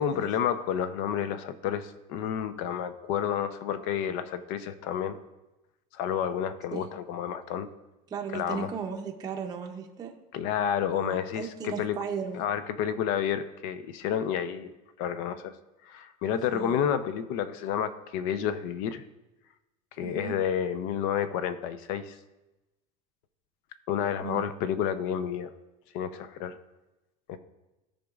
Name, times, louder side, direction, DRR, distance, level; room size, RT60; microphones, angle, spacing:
voice 1, 0.0-5.2 5.9-7.7 8.3-8.7 10.3-12.0 12.3-14.7 15.0-15.5 15.9-19.0 20.0-22.2 23.9-25.5 25.9-26.6 27.3-27.4, left 9 dB, 65° left, 11 dB, 0.6 m, -30 dB
voice 2, 8.1-10.1 11.0-12.5 16.5-16.8 20.0-20.4 24.2-24.5, right 6 dB, 20° right, 1 dB, 0.6 m, -36 dB
14.5 x 5.2 x 2.4 m, 1.0 s
cardioid pair, 155°, 20 cm